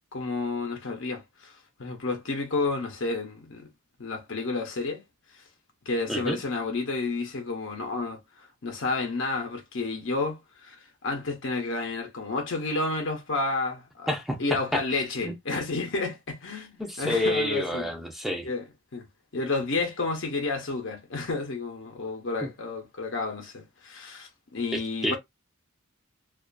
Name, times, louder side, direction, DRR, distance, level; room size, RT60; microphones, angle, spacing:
voice 1, 0.1-3.7 4.0-5.0 5.3-5.4 5.8-14.1 14.4-17.9 18.4-18.6 18.9-19.1 19.3-25.2, left 3 dB, 60° left, 0.7 m, -31 dB
voice 2, 14.1-14.8 15.2-15.4 16.8-18.5 22.4-22.5 24.7-25.2, left 1 dB, ahead, 0.5 m, -29 dB
2.4 x 2.4 x 2.2 m
head